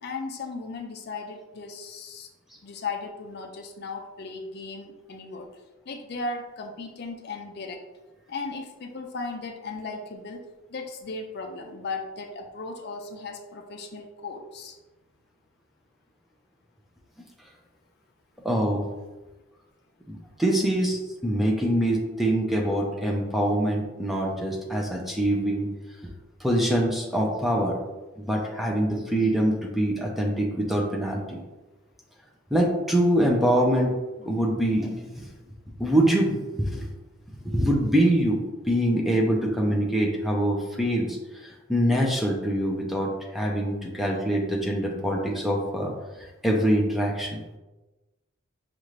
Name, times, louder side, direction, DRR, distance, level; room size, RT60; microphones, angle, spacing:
voice 1, 0.0-2.3 2.6-5.5 5.9-7.8 8.3-14.8 22.7-22.9, left 3 dB, 50° left, 4 dB, 0.4 m, -36 dB
voice 2, 18.4-18.9 20.1-25.7 26.0-26.1 26.4-27.8 28.2-31.4 32.5-33.9 34.2-35.3 35.8-36.9 37.4-38.4 38.7-41.2 41.4-45.9 46.4-47.4, right 1 dB, ahead, -1 dB, 0.5 m, -24 dB
5.4 x 2.5 x 3.1 m, 1.1 s
head